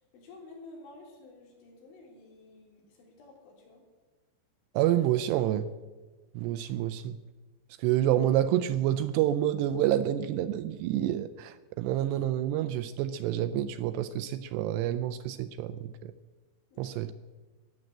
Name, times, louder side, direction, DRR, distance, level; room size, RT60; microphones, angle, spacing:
voice 1, 0.0-3.8 16.7-17.0, left 2 dB, 90° left, -1 dB, 6.0 m, -51 dB
voice 2, 4.8-5.7 6.4-7.2 7.8-15.8 16.0-16.1 16.8-17.1, right 12 dB, 80° right, 11 dB, 2.5 m, -28 dB
14.0 x 10.5 x 7.9 m, 1.3 s
omnidirectional pair, 5.3 m